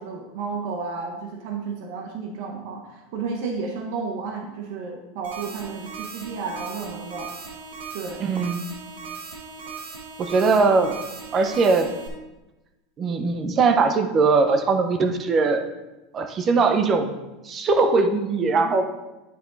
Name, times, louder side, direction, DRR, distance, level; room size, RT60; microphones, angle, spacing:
voice 1, 0.0-7.5 7.9-8.3, right 4 dB, 65° right, 1 dB, 1.1 m, -32 dB
sound 1, 5.2-12.1, right 5 dB, 80° right, 1.3 m, -38 dB
voice 2, 8.2-8.6 10.2-11.0 11.3-11.9 13.0-15.6 16.1-17.2 17.4-18.9, right 4 dB, 30° right, 7 dB, 0.9 m, -20 dB
10.5 x 3.6 x 4.0 m, 1.0 s
supercardioid pair, 120°, 0 cm